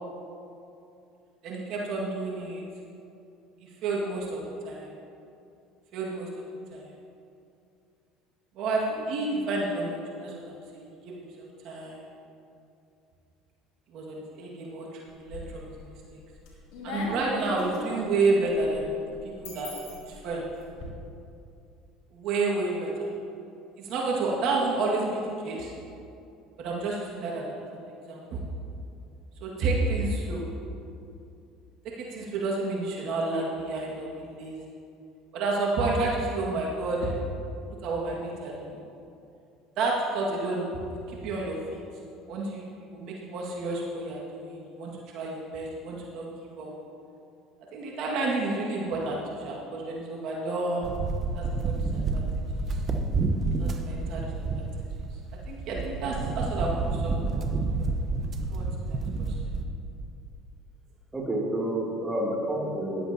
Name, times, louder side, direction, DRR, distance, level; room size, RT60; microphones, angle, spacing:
voice 1, 1.4-2.6 3.6-4.9 5.9-6.4 6.7-6.9 8.6-11.1 11.6-12.0 13.9-16.2 16.8-18.9 19.2-19.7 20.0-20.4 22.1-23.1 23.8-25.7 26.6-27.5 27.8-28.4 29.4-30.4 32.0-34.6 35.3-37.1 37.8-38.8 39.8-40.7 41.1-41.8 42.3-42.6 42.9-46.3 46.6-46.7 47.7-50.9 51.3-52.3 52.6-52.7 53.6-54.7 55.5-57.5 57.8-57.9 58.5-59.0, right 3 dB, 65° right, -3 dB, 1.9 m, -30 dB
sound 1, 15.1-15.8 16.2-20.9, left 2 dB, 75° left, 2.8 m, -40 dB
sound 2, 50.8-59.7, right 3 dB, 40° right, 0.9 m, -29 dB
voice 2, 61.1-63.1, right 1 dB, 15° right, -3 dB, 2.8 m, -29 dB
14.0 x 11.5 x 2.9 m, 2.6 s
supercardioid pair, 85°, 0 cm